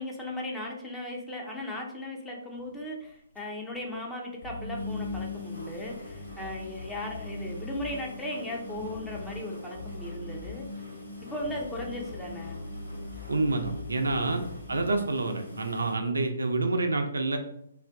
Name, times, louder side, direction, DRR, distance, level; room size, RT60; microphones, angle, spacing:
voice 1, 0.0-10.7 11.3-12.6, left 1 dB, 5° left, -2 dB, 0.5 m, -37 dB
sound 1, 2.6-2.7 3.0-3.1 3.3-3.4 3.8-3.9 4.4-16.0, left 3 dB, 85° left, 1.1 m, -42 dB
sound 2, 4.4-5.4 6.0-8.0 8.7-9.5 9.7-10.7 11.4-15.0, left 2 dB, 65° left, 0.9 m, -43 dB
voice 2, 13.3-14.4 14.7-17.4, right 2 dB, 70° right, 5 dB, 0.4 m, -28 dB
2.5 x 2.5 x 3.3 m, 0.73 s
figure-of-eight pair, 130°, 0 cm